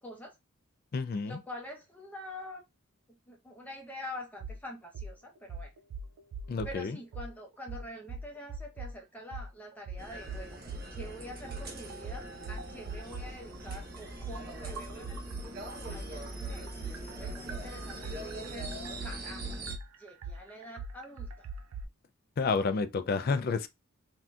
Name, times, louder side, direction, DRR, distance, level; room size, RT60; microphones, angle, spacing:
voice 1, 0.0-0.3 1.2-2.6 3.3-5.7 6.6-15.2 15.5-18.7 19.0-19.6 20.0-21.5, left 1 dB, 5° left, 0.7 m, -46 dB
voice 2, 0.9-1.4 6.5-7.0 22.4-23.7, left 4 dB, 45° left, 0.3 m, -30 dB
sound 1, 4.4-4.6 4.9-5.1 5.5-6.8 7.1-7.3 7.7-8.9 9.3-9.5 9.9-11.1 11.5-15.5 15.8-21.8, right 3 dB, 85° right, 0.4 m, -40 dB
sound 2, 10.0-19.8, right 1 dB, 45° right, 0.7 m, -42 dB
3.5 x 2.6 x 2.3 m
head